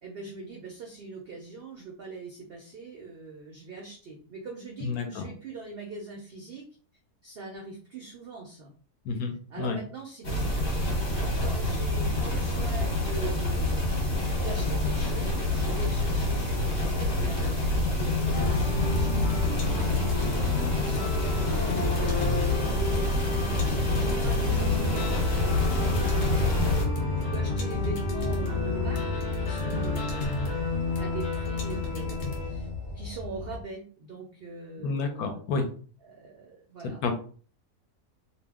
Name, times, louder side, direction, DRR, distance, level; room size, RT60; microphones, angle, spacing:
voice 1, 0.0-6.6 7.2-8.7 9.5-10.8 11.4-13.9 14.3-20.0 20.8-26.9 27.2-30.7 31.0-32.7 32.9-35.4 36.0-37.1, right 3 dB, 75° right, -1 dB, 0.5 m, -42 dB
voice 2, 4.8-5.3 9.0-9.8 34.8-35.7 37.0-37.1, left 4 dB, 75° left, 6 dB, 1.0 m, -30 dB
sound 1, 10.2-26.9, left 1 dB, 40° left, 1.1 m, -27 dB
sound 2, 18.3-33.6, left 3 dB, 55° left, 0.8 m, -30 dB
2.7 x 2.0 x 3.4 m, 0.43 s
omnidirectional pair, 1.7 m